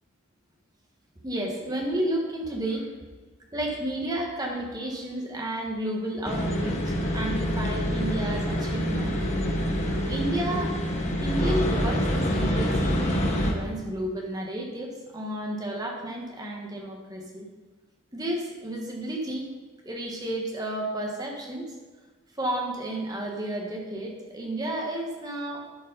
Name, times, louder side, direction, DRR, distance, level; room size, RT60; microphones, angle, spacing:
voice 1, 1.2-2.9 3.5-9.1 10.1-10.8 11.2-17.5 18.1-19.5 19.8-21.7 22.4-25.7, right 1 dB, 20° right, 0 dB, 1.4 m, -32 dB
sound 1, 6.2-13.5, equal, 35° left, 1.3 m, -26 dB
11.5 x 5.4 x 5.3 m, 1.3 s
head